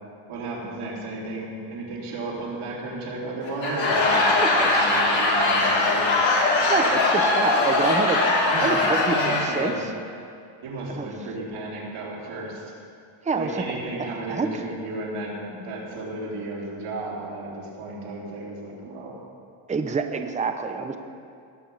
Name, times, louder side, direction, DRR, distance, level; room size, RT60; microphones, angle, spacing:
voice 1, 0.3-6.1 8.5-8.9 9.1-9.9 10.6-12.7 13.3-19.2, right 2 dB, 80° right, -5 dB, 3.7 m, -34 dB
Laughter / Crowd, 3.4-9.7, left 2 dB, 65° left, 2.8 m, -21 dB
voice 2, 6.7-8.2 8.6-9.7 10.9-11.1 13.2-13.6 14.0-14.5 19.7-21.0, right 4 dB, 15° right, 6 dB, 0.7 m, -27 dB
19.0 x 7.1 x 5.6 m, 2.4 s
cardioid pair, 120°, 50 cm